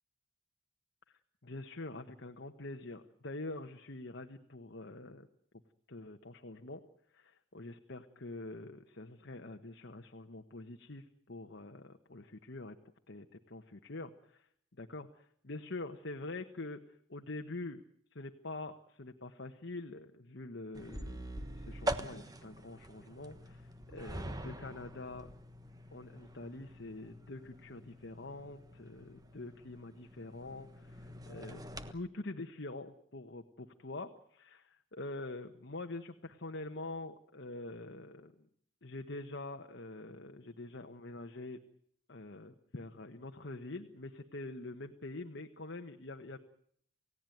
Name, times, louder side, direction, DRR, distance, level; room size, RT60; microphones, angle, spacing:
voice 1, 1.1-5.3 5.9-6.8 7.1-12.8 13.1-14.4 14.8-16.8 17.1-17.8 18.1-25.3 25.9-31.6 31.9-38.5 38.8-41.6 42.1-46.4, left 2 dB, 60° left, 6 dB, 1.3 m, -45 dB
sound 1, 20.7-31.9, right 1 dB, 20° right, 1.3 m, -44 dB
29.0 x 17.0 x 9.3 m, 0.68 s
head